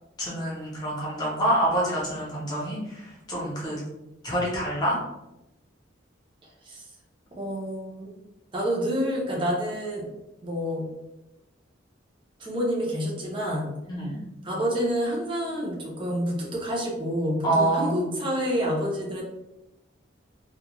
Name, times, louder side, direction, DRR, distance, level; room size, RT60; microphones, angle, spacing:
voice 1, 0.2-3.8 4.2-5.0 13.9-14.2 17.4-18.1, right 1 dB, 20° left, -5 dB, 0.8 m, -26 dB
voice 2, 6.4-6.8 7.4-8.2 8.5-10.0 10.4-10.8 12.4-13.7 14.4-19.2, equal, 25° right, -3 dB, 0.6 m, -28 dB
2.3 x 2.2 x 2.9 m, 0.93 s
head